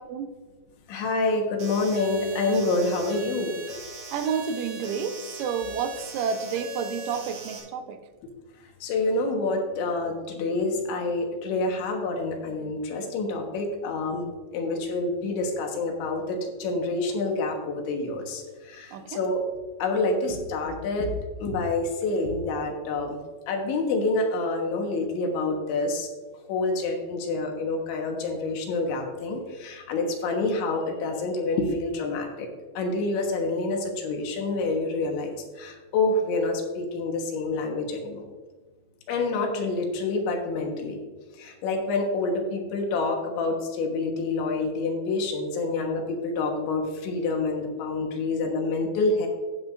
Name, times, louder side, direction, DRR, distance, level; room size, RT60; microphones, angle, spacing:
voice 1, 0.9-3.6 8.8-14.3 14.5-19.4 19.8-21.1 21.4-23.2 23.5-26.1 26.5-32.5 32.8-38.3 39.1-41.0 41.3-49.3, left 3 dB, 80° left, 2 dB, 3.6 m, -27 dB
sound 1, 1.6-7.6, right 2 dB, 65° right, 4.0 m, -40 dB
voice 2, 4.1-8.0 18.9-19.2, right 6 dB, 90° right, 8 dB, 3.3 m, -30 dB
12.5 x 8.9 x 2.6 m, 1.3 s
omnidirectional pair, 5.3 m